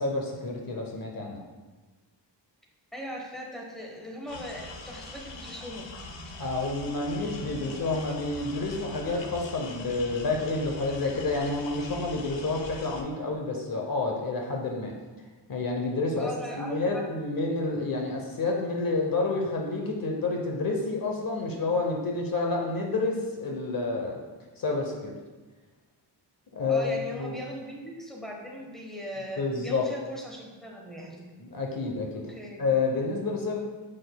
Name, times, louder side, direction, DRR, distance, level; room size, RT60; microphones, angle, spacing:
voice 1, 0.0-1.4 6.4-14.9 15.5-24.2 24.6-25.1 26.5-26.9 27.2-27.4 29.4-29.8 31.4-32.3 32.6-33.6, left 3 dB, 50° left, 0 dB, 0.8 m, -29 dB
voice 2, 2.9-5.9 16.2-17.0 26.7-31.2 32.3-32.6, equal, ahead, -2 dB, 1.2 m, -39 dB
sound 1, 4.3-13.0, left 2 dB, 80° left, 0.8 m, -42 dB
7.4 x 6.1 x 2.2 m, 1.3 s
wide cardioid pair, 110°, 44 cm